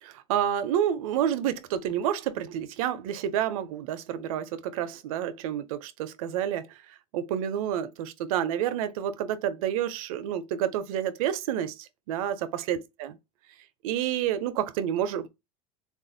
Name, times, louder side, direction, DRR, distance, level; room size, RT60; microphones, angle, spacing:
voice 1, 0.0-13.2 13.8-15.3, right 10 dB, 85° right, 0.5 m, -29 dB
3.5 x 2.4 x 2.6 m
supercardioid pair, 120°, 17 cm